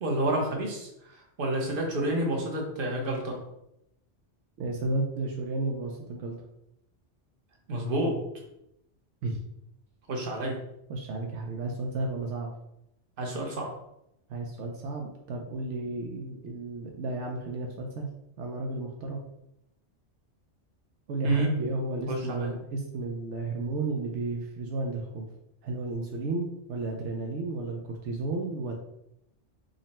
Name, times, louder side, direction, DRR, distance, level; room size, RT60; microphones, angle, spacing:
voice 1, 0.0-3.4 7.7-8.1 10.1-10.5 13.2-13.7 21.2-21.5 22.1-22.5, right 1 dB, 50° right, 1 dB, 1.0 m, -29 dB
voice 2, 4.6-6.3 9.2-9.4 10.9-12.5 14.3-18.1 18.4-19.2 21.1-25.3 25.6-28.7, right 2 dB, 80° right, 1 dB, 0.9 m, -33 dB
3.9 x 2.1 x 4.1 m, 0.82 s
omnidirectional pair, 1.2 m